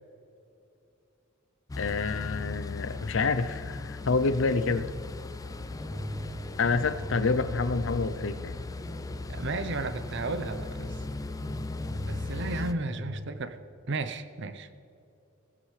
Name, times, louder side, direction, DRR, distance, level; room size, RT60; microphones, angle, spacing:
sound 1, 1.7-12.7, left 3 dB, 15° left, 0.4 m, -38 dB
voice 1, 1.8-4.9 6.6-8.6, left 4 dB, 65° left, 13 dB, 0.6 m, -28 dB
sound 2, 5.7-13.2, equal, ahead, 2.9 m, -41 dB
voice 2, 9.3-10.9 12.1-13.6 13.9-14.7, right 3 dB, 60° right, 10 dB, 0.7 m, -33 dB
16.5 x 13.0 x 3.3 m, 2.7 s
head